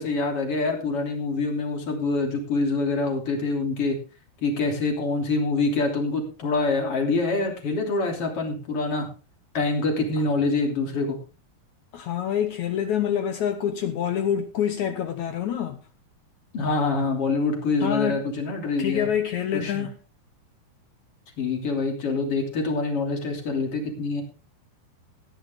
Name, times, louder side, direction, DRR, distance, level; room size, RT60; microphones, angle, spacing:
voice 1, 0.0-4.0 4.4-9.1 9.5-11.2 16.5-19.1 19.6-19.9 21.4-24.2, left 3 dB, 35° left, 3.6 m, -25 dB
voice 2, 11.9-15.8 17.8-18.2 18.8-20.0, left 9 dB, 75° left, 1.8 m, -26 dB
16.0 x 10.5 x 3.6 m
omnidirectional pair, 4.6 m